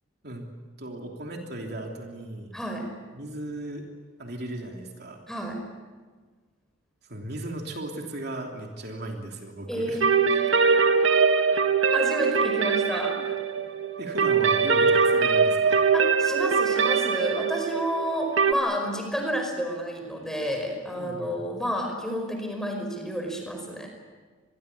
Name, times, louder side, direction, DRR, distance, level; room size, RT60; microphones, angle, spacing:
voice 1, 0.8-2.5 3.1-3.9 4.2-5.2 7.1-10.0 13.2-13.3 13.6-13.7 14.0-15.8 20.9-21.4, right 1 dB, 55° right, 1 dB, 3.2 m, -36 dB
voice 2, 2.5-2.9 5.3-5.6 9.7-10.6 11.9-13.3 15.9-23.9, equal, ahead, 3 dB, 5.2 m, -30 dB
sound 1, 10.0-18.5, right 5 dB, 75° right, 1.6 m, -22 dB
26.5 x 21.5 x 8.5 m, 1.4 s
head